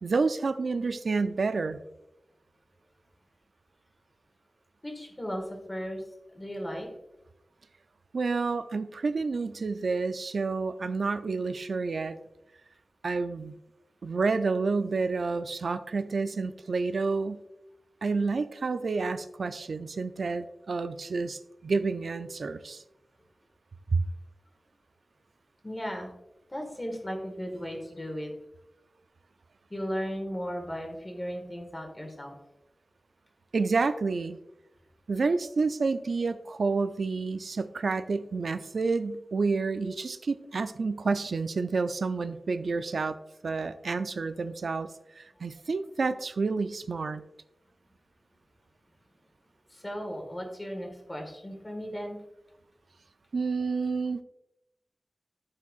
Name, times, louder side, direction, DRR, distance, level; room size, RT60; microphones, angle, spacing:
voice 1, 0.0-1.8 8.1-12.2 13.0-13.6 14.0-17.4 18.0-22.8 23.9-24.0 33.5-34.4 35.1-47.2 53.3-54.2, right 4 dB, 75° right, 11 dB, 0.3 m, -29 dB
voice 2, 4.8-6.0 6.3-6.9 25.6-26.1 26.5-28.3 29.7-32.3 49.7-52.2, equal, 20° left, 2 dB, 1.6 m, -36 dB
12.0 x 4.5 x 2.4 m, 0.89 s
wide cardioid pair, 100°, 0 cm